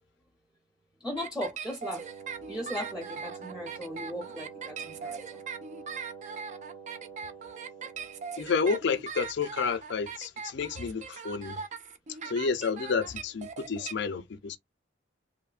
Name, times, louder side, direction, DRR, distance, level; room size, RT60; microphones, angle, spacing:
voice 1, 1.0-2.1 2.5-5.4 10.7-10.8, equal, 5° right, 0.7 m, -37 dB
sound 1, 1.2-13.9, right 6 dB, 40° right, 0.3 m, -40 dB
Wind instrument woodwind instrument, 1.9-8.5, right 6 dB, 85° right, 0.6 m, -46 dB
voice 2, 8.4-11.6 12.2-14.6, left 5 dB, 60° left, 0.4 m, -30 dB
3.0 x 2.1 x 2.3 m
head